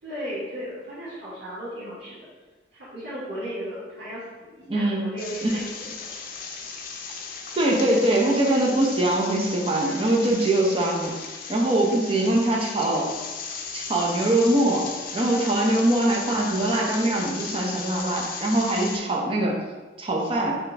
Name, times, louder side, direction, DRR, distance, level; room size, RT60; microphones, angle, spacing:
voice 1, 0.0-2.2 2.7-6.1, equal, 90° right, -13 dB, 1.5 m, -36 dB
voice 2, 4.7-5.0 5.4-5.5 7.6-11.1 11.5-13.1 13.7-19.6 20.0-20.6, right 1 dB, 30° right, -2 dB, 0.7 m, -22 dB
sound 1, 5.2-19.0, left 5 dB, 50° left, 0.5 m, -36 dB
4.4 x 3.3 x 3.4 m, 1.3 s
head